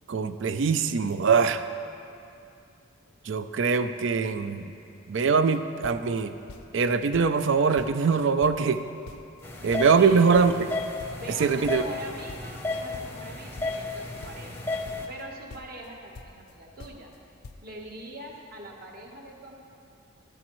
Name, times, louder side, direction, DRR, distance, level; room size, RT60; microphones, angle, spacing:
voice 1, 0.1-1.6 3.2-4.7 5.1-6.3 6.7-8.8 9.6-10.5 11.4-11.8, right 5 dB, 60° right, 10 dB, 0.4 m, -22 dB
sound 1, 5.3-5.6 5.8-6.9 7.1-7.5 7.8-9.4 9.7-12.7 12.9-15.2 15.5-16.5 16.8-17.2 17.4-17.6, left 3 dB, 85° left, 0.5 m, -46 dB
sound 2, 9.4-15.1, left 2 dB, 10° left, 0.7 m, -34 dB
voice 2, 11.2-14.6 15.1-17.1 17.6-19.5, right 1 dB, 45° right, 0 dB, 1.2 m, -42 dB
12.5 x 11.5 x 3.1 m, 2.6 s
head